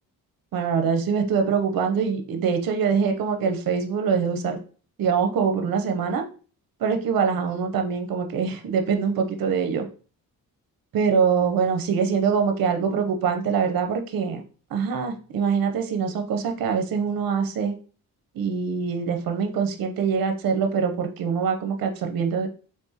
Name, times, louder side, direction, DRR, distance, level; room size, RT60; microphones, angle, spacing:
voice 1, 0.5-4.6 5.0-6.2 6.8-9.9 10.9-14.4 14.7-17.7 18.3-22.5, right 6 dB, 65° right, 5 dB, 0.7 m, -24 dB
3.4 x 3.2 x 2.8 m, 0.38 s
cardioid pair, 70°, 37 cm